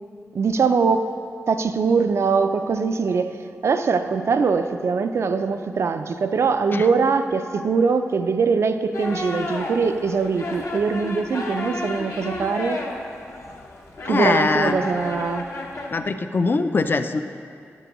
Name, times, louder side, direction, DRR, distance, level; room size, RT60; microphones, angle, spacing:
voice 1, 0.3-1.1 1.5-3.4 3.6-12.8 14.1-15.5, right 5 dB, 65° right, 8 dB, 0.4 m, -22 dB
sound 1, 8.9-16.0, left 2 dB, 65° left, 0.8 m, -32 dB
voice 2, 14.1-14.8 15.9-17.2, left 3 dB, 45° left, 9 dB, 0.4 m, -22 dB
9.1 x 8.0 x 3.0 m, 2.4 s
wide cardioid pair, 85°, 5 cm